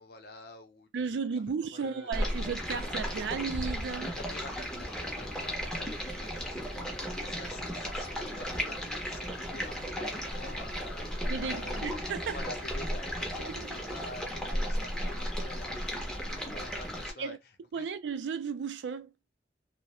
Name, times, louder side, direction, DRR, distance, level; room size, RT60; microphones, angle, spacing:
voice 1, 0.0-1.4 1.7-2.1 4.1-11.8 12.3-15.8 16.2-17.4 17.7-17.9, left 2 dB, 60° left, 0.6 m, -48 dB
voice 2, 0.9-4.1 11.3-12.4 13.3-13.8 17.2-17.4 17.7-19.1, right 5 dB, 85° right, 0.4 m, -34 dB
Stream, 2.1-17.1, equal, 5° left, 0.6 m, -35 dB
2.3 x 2.1 x 2.9 m
head